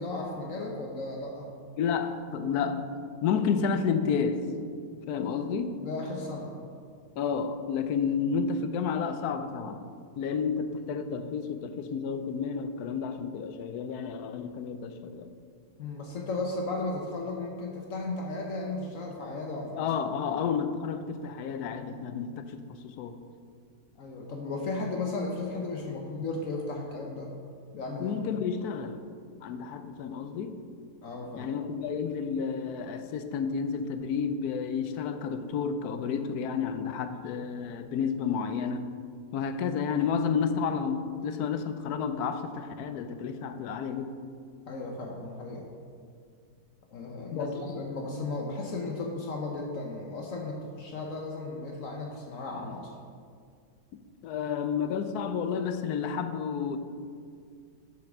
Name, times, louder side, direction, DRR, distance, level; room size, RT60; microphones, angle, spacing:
voice 1, 0.0-1.5 5.8-6.5 15.8-19.9 20.3-20.4 24.0-27.3 27.7-28.2 31.0-31.5 44.7-45.7 46.9-52.9, left 2 dB, 65° left, 0 dB, 1.1 m, -35 dB
voice 2, 1.8-2.9 3.2-4.4 5.1-5.8 7.2-9.8 10.2-15.3 19.8-23.2 28.0-29.0 29.4-30.6 31.4-38.9 39.3-44.2 47.3-47.5 54.2-56.8, left 6 dB, 85° left, 10 dB, 1.1 m, -31 dB
7.3 x 6.0 x 6.0 m, 2.2 s
omnidirectional pair, 1.6 m